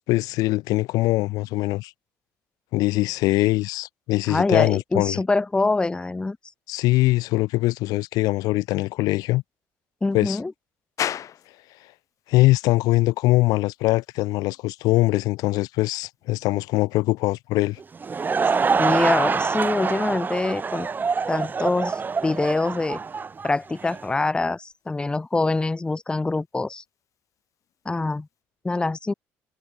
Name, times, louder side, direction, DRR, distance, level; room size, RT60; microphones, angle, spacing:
voice 1, 0.1-1.9 2.7-5.2 6.7-9.4 10.1-10.4 12.3-17.8, left 19 dB, 80° left, 0.6 m, -22 dB
voice 2, 4.3-6.4 10.0-10.5 18.8-20.9 21.3-23.0 23.4-26.8 27.9-28.3 28.6-29.1, left 3 dB, 15° left, 0.6 m, -24 dB
sound 1, 11.0-28.4, left 10 dB, 55° left, 6.1 m, -43 dB
Laughter / Crowd, 17.8-24.1, right 5 dB, 30° right, 1.4 m, -25 dB
supercardioid pair, 90°, 6 cm